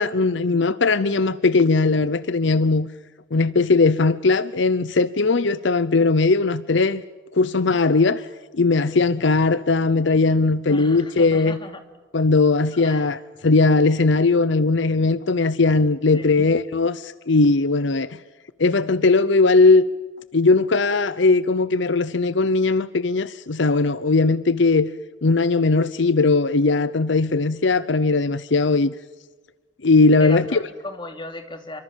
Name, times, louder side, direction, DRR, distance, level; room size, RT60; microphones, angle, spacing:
voice 1, 0.0-2.9 3.3-7.0 7.3-8.3 8.5-11.6 12.1-18.2 18.6-19.8 20.3-24.9 25.2-28.9 29.8-30.6, left 3 dB, 65° left, 0.7 m, -19 dB
voice 2, 10.7-11.8 12.7-13.1 16.1-16.4 30.2-31.8, left 2 dB, 25° left, 3.0 m, -36 dB
28.5 x 25.0 x 7.4 m
head